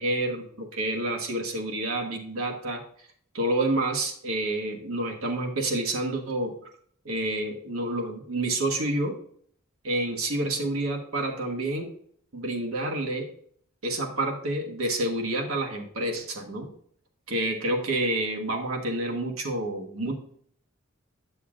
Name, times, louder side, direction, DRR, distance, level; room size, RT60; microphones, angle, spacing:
voice 1, 0.0-2.8 3.3-6.5 7.0-9.1 9.8-11.9 12.3-13.3 13.8-16.7 17.3-20.1, right 1 dB, 85° right, 1 dB, 1.4 m, -28 dB
8.5 x 6.9 x 2.5 m, 0.62 s
head